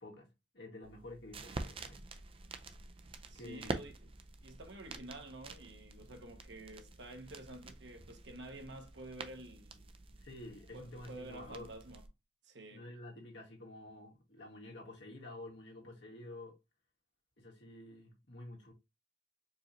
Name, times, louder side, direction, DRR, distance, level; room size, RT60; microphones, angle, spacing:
voice 1, 0.0-2.0 3.3-3.9 4.9-5.0 10.2-11.8 12.7-16.6 17.4-18.7, left 1 dB, 70° left, 1.6 m, -50 dB
sound 1, 0.8-12.1, right 3 dB, 30° right, 0.5 m, -47 dB
voice 2, 3.3-4.0 4.4-9.9 10.7-12.0 12.4-12.9, right 2 dB, 85° right, 1.1 m, -50 dB
4.7 x 3.1 x 2.6 m
head